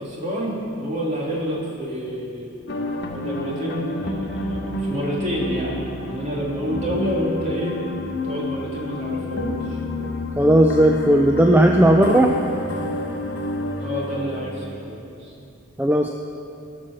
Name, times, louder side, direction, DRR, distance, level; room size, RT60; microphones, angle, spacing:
voice 1, 0.0-2.5 3.1-7.7 8.2-9.8 13.8-15.3, equal, 35° right, -4 dB, 2.3 m, -28 dB
sound 1, 2.7-14.5, left 2 dB, 55° left, 1.1 m, -29 dB
voice 2, 10.4-12.3 15.8-16.1, right 1 dB, 10° right, 3 dB, 0.3 m, -15 dB
16.5 x 6.1 x 6.2 m, 2.6 s
head